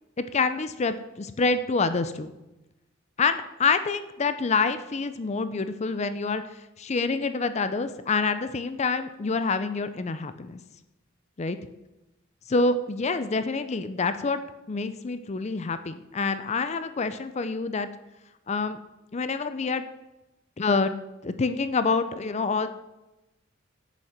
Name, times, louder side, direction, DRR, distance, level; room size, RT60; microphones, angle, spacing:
voice 1, 0.3-2.3 3.2-6.4 6.8-10.6 11.4-11.6 12.5-14.4 14.7-17.9 18.5-18.8 19.1-19.8 20.6-20.9 21.2-22.7, left 4 dB, 35° left, 11 dB, 0.5 m, -27 dB
8.2 x 7.3 x 5.8 m, 0.98 s
head